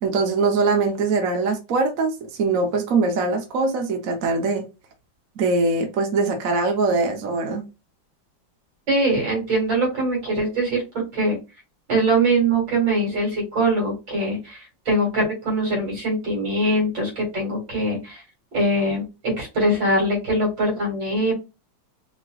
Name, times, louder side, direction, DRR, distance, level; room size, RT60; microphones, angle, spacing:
voice 1, 0.0-4.6 5.4-7.6, right 3 dB, 55° right, 3 dB, 1.1 m, -22 dB
voice 2, 8.9-11.4 11.9-14.6 14.9-18.2 18.5-19.0 19.4-21.3, right 1 dB, 70° right, -2 dB, 3.1 m, -22 dB
4.9 x 3.0 x 2.3 m, 0.27 s
omnidirectional pair, 2.1 m